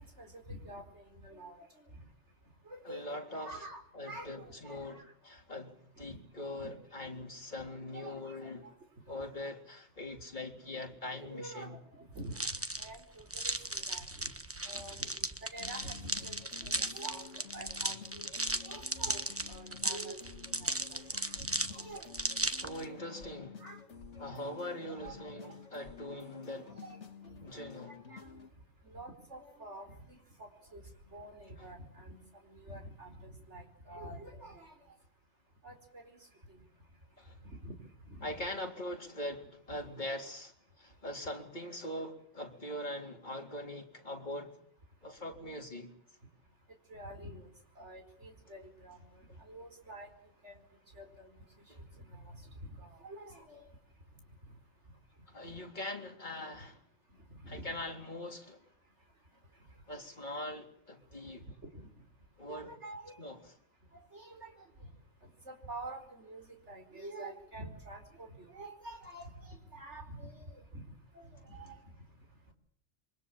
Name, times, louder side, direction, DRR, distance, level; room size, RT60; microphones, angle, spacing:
voice 1, 0.2-1.7 2.7-5.0 6.1-6.2 6.5-6.7 7.9-8.5 9.1-9.2 11.3-14.1 14.6-18.4 18.6-22.2 23.6-23.8 25.0-25.1 26.7-27.0 27.2-27.4 27.9-28.3 28.8-30.8 31.1-34.8 35.6-36.2 37.5-37.8 38.1-38.5 39.7-39.8 46.9-47.5 47.8-49.0 49.4-50.1 50.4-50.6 50.9-51.3 52.0-53.7 57.4-57.7 61.7-61.9 62.5-63.1 63.9-64.5 65.5-70.8 71.1-71.8, right 1 dB, 60° right, 5.1 m, -48 dB
voice 2, 2.8-3.7 3.9-8.7 9.1-11.8 22.4-23.6 24.2-26.7 27.4-27.9 37.2-37.4 38.2-44.6 45.0-45.9 51.7-51.8 55.3-56.8 57.5-58.6 59.9-61.5 62.4-62.7 63.2-63.5, left 1 dB, 35° left, 4.0 m, -42 dB
sound 1, 12.3-22.8, right 1 dB, 10° right, 1.1 m, -36 dB
sound 2, 15.6-28.5, left 6 dB, 65° left, 2.1 m, -51 dB
28.0 x 23.5 x 7.4 m
omnidirectional pair, 1.3 m